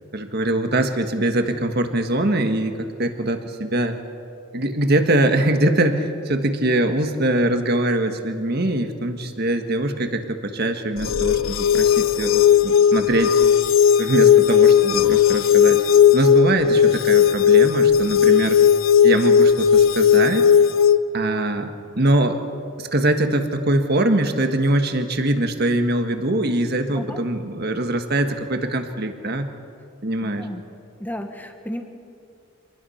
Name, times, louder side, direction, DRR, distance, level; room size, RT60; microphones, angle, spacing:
voice 1, 0.1-4.0 4.5-13.4 14.0-15.8 16.1-18.6 19.0-20.5 21.1-22.4 22.8-29.5 30.0-30.5, right 1 dB, 50° right, 6 dB, 1.6 m, -22 dB
sound 1, 11.0-21.0, left 8 dB, 70° left, 0.7 m, -16 dB
voice 2, 30.2-30.6 31.0-31.8, equal, 10° left, 5 dB, 1.4 m, -33 dB
27.0 x 20.0 x 5.8 m, 2.4 s
head